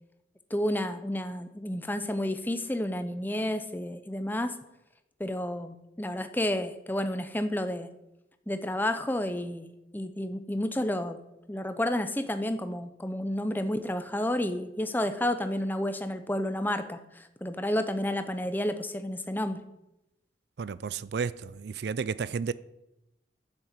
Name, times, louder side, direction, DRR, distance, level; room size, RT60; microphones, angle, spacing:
voice 1, 0.5-4.6 5.2-7.9 8.5-9.7 9.9-11.2 11.5-19.6, left 1 dB, 10° left, 0.7 m, -31 dB
voice 2, 20.6-22.5, right 5 dB, 65° right, 0.4 m, -32 dB
9.8 x 7.3 x 8.2 m
head